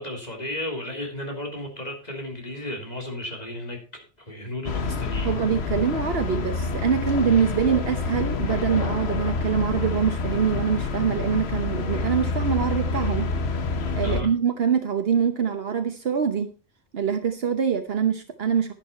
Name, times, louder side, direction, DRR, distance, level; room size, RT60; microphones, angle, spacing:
voice 1, 0.0-5.3 14.0-14.3, left 1 dB, 40° left, 2 dB, 3.4 m, -34 dB
sound 1, 4.6-14.2, left 4 dB, 85° left, 1.3 m, -27 dB
voice 2, 5.2-13.3 14.0-16.5 16.9-18.7, right 7 dB, 70° right, 7 dB, 1.2 m, -24 dB
11.0 x 10.5 x 4.3 m, 0.33 s
omnidirectional pair, 1.1 m